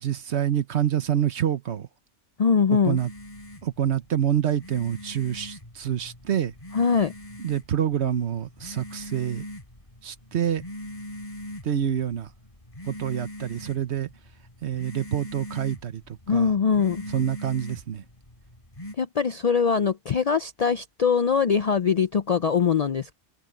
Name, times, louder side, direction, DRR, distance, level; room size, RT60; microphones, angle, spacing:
voice 1, 0.0-1.9 2.7-3.1 3.6-6.5 7.4-9.4 10.0-10.6 11.6-12.3 12.9-14.1 14.6-16.5 17.1-18.0, right 9 dB, 65° right, 1.2 m, -27 dB
voice 2, 2.4-3.0 6.7-7.1 16.3-17.0 19.0-23.1, left 6 dB, 55° left, 0.4 m, -22 dB
sound 1, 3.0-18.9, left 1 dB, 30° left, 4.0 m, -42 dB
open air
omnidirectional pair, 1.2 m